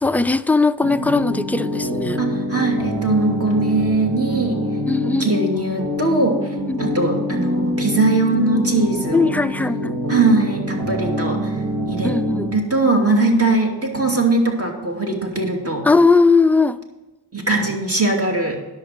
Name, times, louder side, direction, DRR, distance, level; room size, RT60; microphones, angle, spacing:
voice 1, 0.0-2.2 4.9-5.3 6.7-7.3 9.1-10.0 12.0-12.5 12.8-13.0 15.8-16.8, left 3 dB, 5° left, 10 dB, 0.4 m, -19 dB
sound 1, 0.8-12.5, left 1 dB, 60° right, 2.3 m, -25 dB
voice 2, 2.2-4.6 5.0-6.4 6.8-9.3 10.1-11.5 11.9-12.1 12.5-15.8 17.3-18.6, right 2 dB, 35° right, 1 dB, 2.6 m, -20 dB
10.5 x 7.3 x 5.9 m, 1.2 s
cardioid pair, 55°, 42 cm